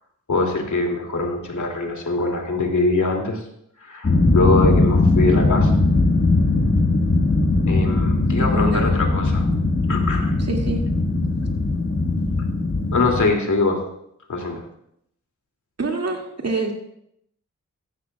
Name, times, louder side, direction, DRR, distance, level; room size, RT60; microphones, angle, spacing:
voice 1, 0.3-3.4 3.8-5.7 7.7-9.4 9.9-10.4 12.9-13.8 14.3-14.6, left 3 dB, 65° left, 1 dB, 2.7 m, -23 dB
sound 1, 4.0-13.3, left 2 dB, 40° left, 1.6 m, -19 dB
voice 2, 8.4-8.9 10.4-10.8 15.8-16.7, right 3 dB, 50° right, 1 dB, 2.4 m, -26 dB
15.0 x 13.0 x 2.4 m, 0.74 s
cardioid pair, 45°, 32 cm